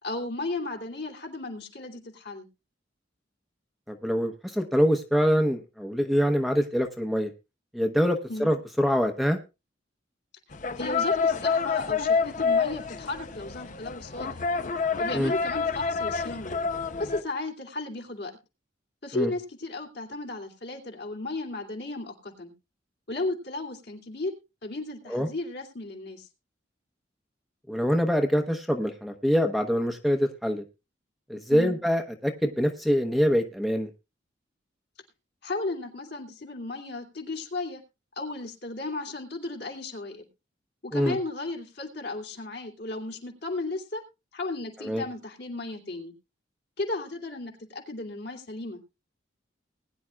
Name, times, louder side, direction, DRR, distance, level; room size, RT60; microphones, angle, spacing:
voice 1, 0.0-2.5 8.3-8.5 10.8-14.4 15.0-16.5 17.0-18.3 19.0-22.5 23.1-24.3 24.6-26.3 31.5-31.7 35.4-37.8 38.2-40.3 40.8-44.0 44.3-46.1 46.8-48.8, left 2 dB, 60° left, 1 dB, 2.7 m, -34 dB
voice 2, 3.9-7.3 7.7-9.4 15.1-15.3 19.1-19.3 25.1-25.3 27.7-30.6 31.3-33.9 40.9-41.2 44.8-45.0, equal, ahead, 3 dB, 0.9 m, -25 dB
sound 1, 10.5-17.2, left 5 dB, 40° left, 0.7 m, -28 dB
20.0 x 10.0 x 2.4 m, 0.27 s
head